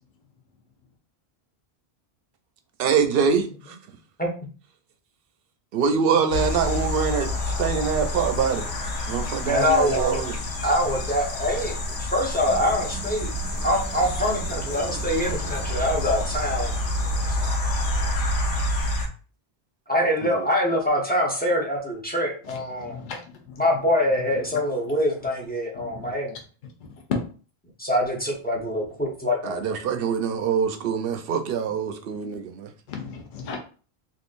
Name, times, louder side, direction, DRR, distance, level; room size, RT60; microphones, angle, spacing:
voice 1, 2.8-3.8 5.7-8.7 9.1-10.4 20.2-20.5 29.4-32.7, right 6 dB, 65° right, 0.7 m, -24 dB
sound 1, 6.3-19.1, left 1 dB, 90° left, 1.0 m, -28 dB
voice 2, 9.4-10.2 10.6-13.3 13.6-16.7 17.3-17.4 19.9-23.0 23.6-26.4 27.8-29.8, left 1 dB, 10° left, 0.7 m, -24 dB
sound 2, 12.4-17.5, right 4 dB, 10° right, 1.0 m, -37 dB
voice 3, 22.4-23.6 24.1-24.6 25.7-26.1 26.9-27.2 32.9-33.6, left 5 dB, 55° left, 0.7 m, -34 dB
3.7 x 2.5 x 2.5 m
omnidirectional pair, 1.1 m